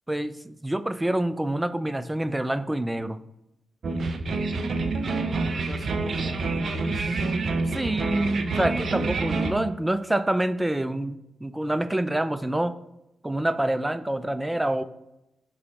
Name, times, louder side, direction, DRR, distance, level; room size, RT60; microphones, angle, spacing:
voice 1, 0.1-3.2 7.7-12.8 13.2-14.8, right 1 dB, 15° right, 13 dB, 0.5 m, -27 dB
sound 1, 3.8-9.5, right 3 dB, 60° right, 0.7 m, -27 dB
voice 2, 5.0-7.3, equal, 25° left, 2 dB, 1.6 m, -41 dB
5.5 x 4.1 x 5.3 m, 0.87 s
supercardioid pair, 45°, 0 cm